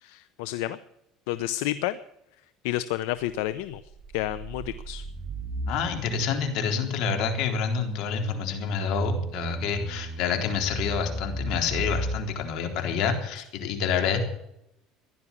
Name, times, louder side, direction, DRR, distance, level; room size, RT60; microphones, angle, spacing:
voice 1, 0.0-0.8 1.3-2.0 2.6-3.8 4.1-5.0, left 14 dB, 85° left, 14 dB, 0.7 m, -30 dB
sound 1, 3.4-12.2, right 1 dB, 20° right, 2.9 m, -35 dB
voice 2, 5.7-14.2, left 6 dB, 65° left, 4 dB, 3.8 m, -28 dB
16.0 x 11.5 x 7.3 m, 0.81 s
cardioid pair, 125°, 0 cm